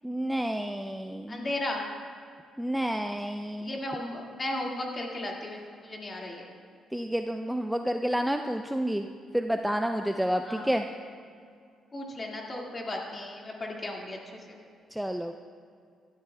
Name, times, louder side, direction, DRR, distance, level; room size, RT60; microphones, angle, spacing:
voice 1, 0.0-1.5 2.6-3.7 6.9-9.1 9.3-10.8 14.9-15.3, equal, 5° right, 5 dB, 0.4 m, -29 dB
voice 2, 1.3-1.9 3.6-6.5 10.4-10.7 11.9-14.6, left 1 dB, 30° left, -1 dB, 1.9 m, -35 dB
16.0 x 12.0 x 2.2 m, 2.3 s
cardioid pair, 90°, 0 cm